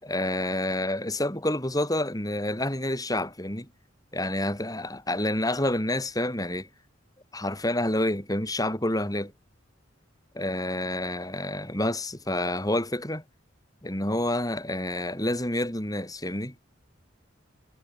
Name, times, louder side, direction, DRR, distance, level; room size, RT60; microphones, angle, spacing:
voice 1, 0.0-3.7 4.1-6.7 7.3-9.3 10.3-13.2 13.8-16.5, left 1 dB, 20° left, 7.6 m, -28 dB
head